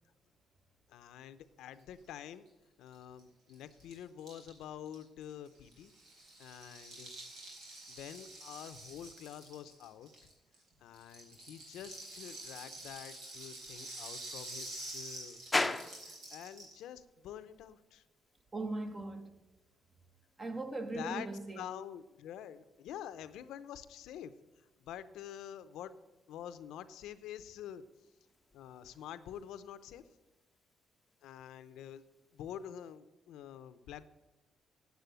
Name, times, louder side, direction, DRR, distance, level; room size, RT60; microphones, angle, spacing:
voice 1, 0.9-2.5 2.8-5.9 6.4-7.1 7.9-10.1 10.8-18.0 20.9-21.3 21.6-26.0 26.3-27.8 28.5-30.0 31.2-32.0 32.3-34.1, left 10 dB, 85° left, 0.6 m, -47 dB
Rattle (instrument), 2.9-3.0 3.2-3.3 3.5-10.6 10.9-16.8, right 2 dB, 80° right, 4.2 m, -48 dB
sound 1, 15.5-33.0, left 2 dB, 15° left, 0.7 m, -45 dB
voice 2, 18.5-19.3 20.4-21.7, right 2 dB, 35° right, 1.3 m, -39 dB
8.3 x 8.1 x 7.9 m
cardioid pair, 90°, 0 cm